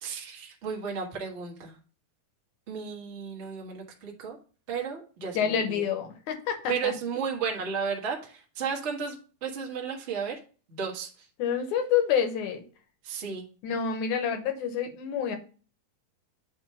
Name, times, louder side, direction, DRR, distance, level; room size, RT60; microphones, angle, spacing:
voice 1, 0.0-1.8 2.7-4.4 4.7-5.8 6.7-10.4 10.7-11.3 13.0-13.4, right 6 dB, 70° right, -1 dB, 0.6 m, -33 dB
voice 2, 5.3-6.9 11.4-12.6 13.6-15.4, left 7 dB, 65° left, 6 dB, 2.2 m, -28 dB
8.6 x 3.3 x 5.6 m, 0.37 s
omnidirectional pair, 4.0 m